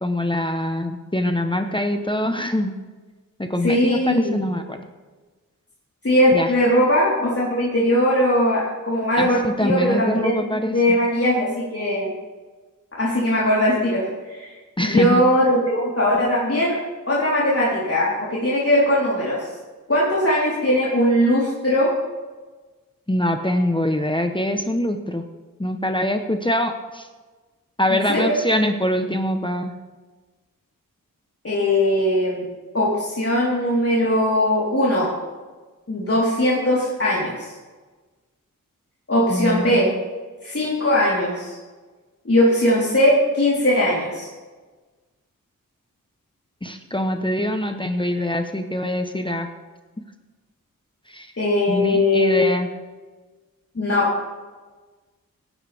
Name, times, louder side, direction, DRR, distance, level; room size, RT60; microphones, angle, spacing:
voice 1, 0.0-2.7 3.4-4.8 6.3-6.5 9.2-11.0 14.8-15.2 23.1-25.2 25.6-27.1 27.8-29.7 39.3-40.0 46.6-49.5 51.1-51.3 51.7-52.7, left 1 dB, 15° left, 6 dB, 1.1 m, -23 dB
voice 2, 3.6-4.3 6.0-12.1 13.0-14.0 14.3-14.5 14.8-16.7 17.1-19.5 19.9-21.9 27.9-28.4 31.4-32.5 32.7-35.1 35.9-37.5 39.1-39.9 40.4-41.6 42.2-44.3 51.4-52.4 53.8-54.1, left 1 dB, 40° left, -7 dB, 4.1 m, -20 dB
18.0 x 10.5 x 3.6 m, 1.3 s
cardioid pair, 50°, 34 cm